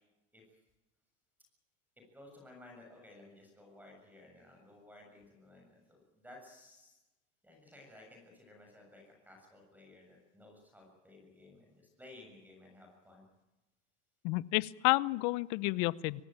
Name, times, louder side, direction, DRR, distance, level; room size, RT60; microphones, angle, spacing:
voice 1, 2.1-7.0 7.4-13.3, left 2 dB, 5° right, 1 dB, 7.2 m, -56 dB
voice 2, 14.2-16.2, left 21 dB, 55° left, 19 dB, 1.0 m, -30 dB
24.0 x 18.0 x 9.0 m, 1.0 s
supercardioid pair, 125°, 35 cm